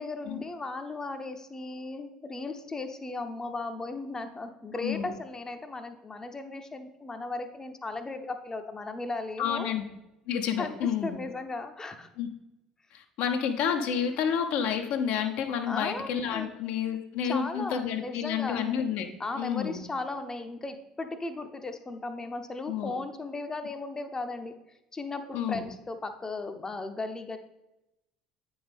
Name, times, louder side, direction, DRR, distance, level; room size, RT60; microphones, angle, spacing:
voice 1, 0.0-9.7 10.6-10.8 11.0-12.1 15.7-16.5 17.2-18.6 19.2-24.5 24.9-27.4, left 3 dB, 20° left, 7 dB, 0.7 m, -36 dB
voice 2, 4.8-5.1 9.4-9.8 10.3-11.2 12.2-12.3 12.9-19.1 19.3-19.8 22.7-22.9 25.3-25.6, left 8 dB, 60° left, 5 dB, 0.7 m, -30 dB
8.6 x 5.3 x 3.4 m, 0.93 s
figure-of-eight pair, 60°, 3 cm